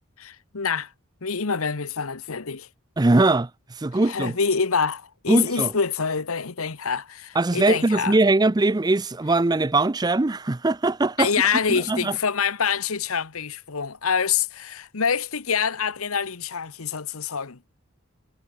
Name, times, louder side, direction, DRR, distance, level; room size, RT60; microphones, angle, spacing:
voice 1, 0.2-0.9 1.2-2.7 4.1-8.2 11.2-17.6, left 6 dB, 75° left, 1.1 m, -26 dB
voice 2, 3.0-4.3 5.3-5.7 7.4-11.3 11.7-12.2, right 2 dB, 20° right, 0.5 m, -21 dB
head